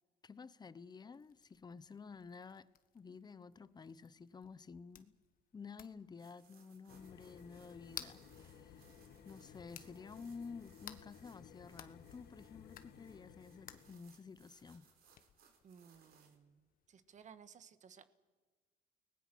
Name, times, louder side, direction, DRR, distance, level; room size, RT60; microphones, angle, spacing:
voice 1, 0.2-5.2 5.5-8.8 9.2-14.9, left 5 dB, 25° left, 0.8 m, -52 dB
sound 1, 1.1-17.5, left 10 dB, 55° left, 1.5 m, -58 dB
sound 2, 6.2-16.4, right 6 dB, 60° right, 4.1 m, -69 dB
sound 3, 6.9-13.9, left 8 dB, 75° left, 2.2 m, -58 dB
voice 2, 15.6-18.0, right 7 dB, 45° right, 1.5 m, -59 dB
30.0 x 20.0 x 6.2 m
cardioid pair, 110°, 17 cm